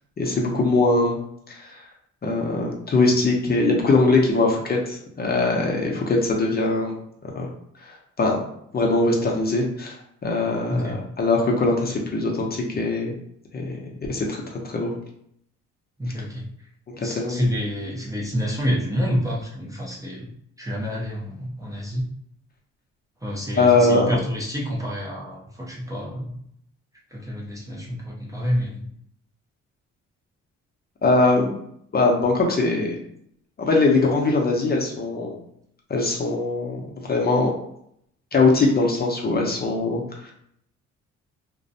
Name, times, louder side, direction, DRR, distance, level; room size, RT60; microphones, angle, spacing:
voice 1, 0.2-1.2 1.5-1.9 2.2-6.9 7.3-7.5 7.8-8.4 8.7-10.0 10.2-13.1 13.5-13.8 14.1-14.9 17.0-17.5 23.5-24.2 31.0-31.6 31.9-33.0 33.6-35.4 35.9-37.5 38.3-40.3, left 3 dB, 30° left, -1 dB, 0.6 m, -21 dB
voice 2, 16.0-16.7 17.0-22.1 23.2-26.4 27.1-28.9, equal, 10° right, -3 dB, 0.5 m, -28 dB
2.5 x 2.0 x 2.6 m, 0.71 s
cardioid pair, 90°, 30 cm